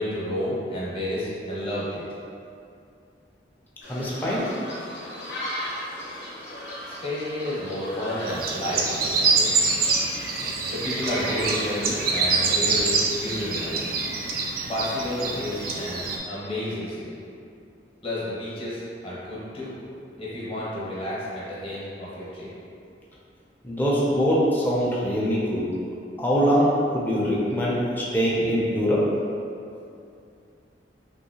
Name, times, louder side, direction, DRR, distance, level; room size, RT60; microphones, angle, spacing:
voice 1, 0.0-2.0 6.9-9.5 10.7-13.9 14.6-17.2 18.0-19.7 20.2-22.5, left 1 dB, 30° left, -8 dB, 0.8 m, -31 dB
sound 1, 3.8-12.5, equal, 65° left, 0.7 m, -37 dB
voice 2, 3.9-4.5 23.6-25.7 26.2-29.0, equal, 10° left, -6 dB, 0.4 m, -23 dB
sound 2, 8.3-16.2, right 4 dB, 55° right, 0.3 m, -25 dB
3.0 x 2.7 x 2.7 m, 2.5 s
head